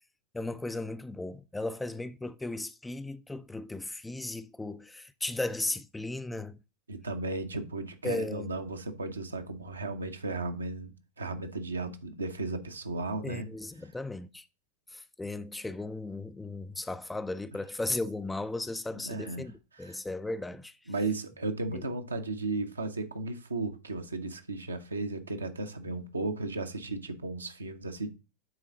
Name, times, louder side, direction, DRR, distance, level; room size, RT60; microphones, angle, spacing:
voice 1, 0.3-6.6 8.0-8.5 13.2-14.4 14.9-20.7 21.7-21.8, left 2 dB, 5° left, 0.4 m, -36 dB
voice 2, 6.9-13.5 18.9-19.5 19.8-20.0 20.9-28.1, right 2 dB, 75° right, 1.0 m, -35 dB
9.3 x 4.0 x 3.8 m
figure-of-eight pair, 90°, 0 cm